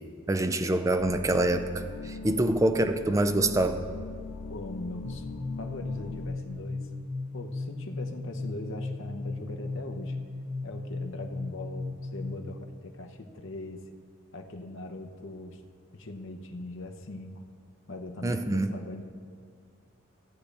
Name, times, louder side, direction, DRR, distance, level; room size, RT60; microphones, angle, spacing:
voice 1, 0.3-3.8 18.2-18.7, right 1 dB, 15° right, 8 dB, 0.4 m, -26 dB
sound 1, 1.0-6.3, left 4 dB, 85° left, 0.5 m, -41 dB
voice 2, 4.5-5.3 5.6-6.9 7.3-10.2 10.6-13.9 14.3-15.6 15.9-17.4 17.9-19.0, left 2 dB, 65° left, 4 dB, 0.9 m, -40 dB
sound 2, 5.0-12.6, left 3 dB, 65° right, 1.8 m, -36 dB
16.0 x 8.5 x 3.4 m, 2.1 s
head